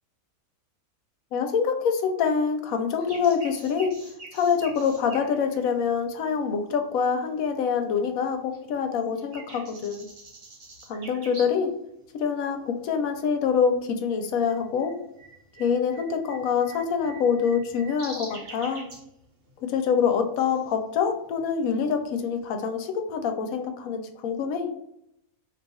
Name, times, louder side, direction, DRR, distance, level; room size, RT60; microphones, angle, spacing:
voice 1, 1.3-4.0 4.3-10.1 10.9-11.7 12.1-15.0 15.6-18.9 19.6-24.7, left 6 dB, 75° left, 6 dB, 1.0 m, -25 dB
sound 1, 3.0-7.0 7.4-8.3 8.5-11.7 12.0-12.1 12.8-13.2 13.5-22.4, right 2 dB, 60° right, 1.1 m, -46 dB
2.8 x 2.3 x 4.1 m, 0.78 s
omnidirectional pair, 1.5 m